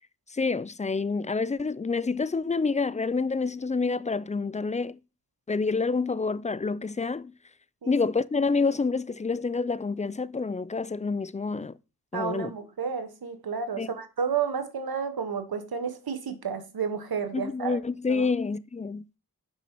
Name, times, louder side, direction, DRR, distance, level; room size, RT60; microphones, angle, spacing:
voice 1, 0.3-5.0 5.5-7.3 7.9-11.7 12.1-12.5 13.8-13.9 17.3-19.0, left 4 dB, 20° left, 0.3 m, -28 dB
voice 2, 12.1-17.8 18.1-18.3, right 6 dB, 90° right, 1.0 m, -31 dB
6.1 x 5.4 x 4.5 m
wide cardioid pair, 55°, 36 cm